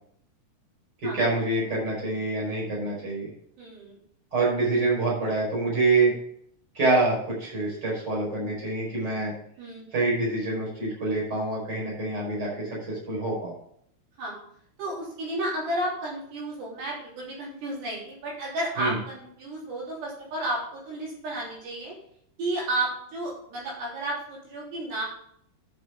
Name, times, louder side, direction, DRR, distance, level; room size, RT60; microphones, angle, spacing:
voice 1, 1.0-3.3 4.3-6.1 6.7-9.3 9.9-13.5 18.8-19.0, right 3 dB, 25° right, -4 dB, 5.5 m, -26 dB
voice 2, 3.6-4.0 9.6-10.1 14.2-14.4 14.8-22.0 22.4-25.0, right 1 dB, 80° right, -4 dB, 5.7 m, -32 dB
11.0 x 8.3 x 3.8 m, 0.66 s
omnidirectional pair, 4.7 m